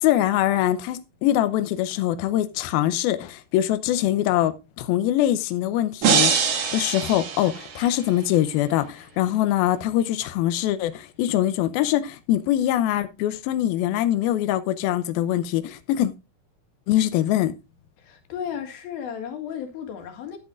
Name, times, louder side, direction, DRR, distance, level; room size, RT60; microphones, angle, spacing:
voice 1, 0.0-16.1 16.9-17.5, left 13 dB, 90° left, 2.1 m, -23 dB
sound 1, 6.0-8.2, right 6 dB, 65° right, 1.5 m, -23 dB
voice 2, 18.0-20.4, left 8 dB, 60° left, 3.5 m, -34 dB
13.0 x 8.9 x 2.5 m
omnidirectional pair, 5.2 m